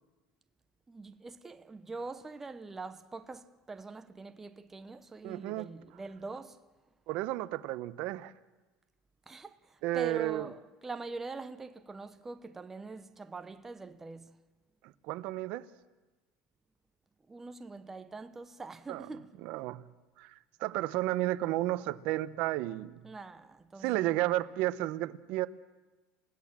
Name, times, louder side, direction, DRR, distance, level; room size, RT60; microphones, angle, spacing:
voice 1, 0.9-6.6 9.3-14.4 17.3-19.4 23.0-24.3, right 3 dB, 15° right, 1.0 m, -44 dB
voice 2, 5.2-5.7 7.1-8.3 9.8-10.5 15.1-15.7 18.9-19.1 19.4-19.8 20.2-20.3 20.6-23.0 23.8-25.5, right 16 dB, 60° right, 1.0 m, -32 dB
29.0 x 17.0 x 7.5 m
supercardioid pair, 120°, 2 cm